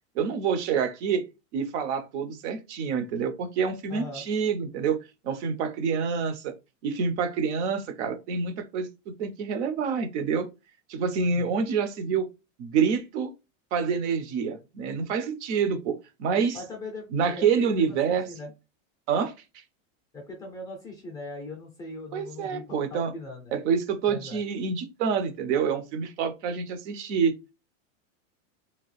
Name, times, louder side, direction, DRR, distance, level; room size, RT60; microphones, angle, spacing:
voice 1, 0.2-1.2 1.5-5.0 5.2-6.5 6.8-10.5 10.9-12.3 12.6-13.3 13.7-16.6 17.1-18.3 19.1-19.3 22.1-23.1 23.5-27.3, right 6 dB, 60° right, 0.7 m, -27 dB
voice 2, 3.9-4.2 11.3-11.5 16.5-18.5 20.1-23.5 24.1-24.4, left 2 dB, 10° left, 0.4 m, -40 dB
2.9 x 2.4 x 3.1 m
supercardioid pair, 155°, 39 cm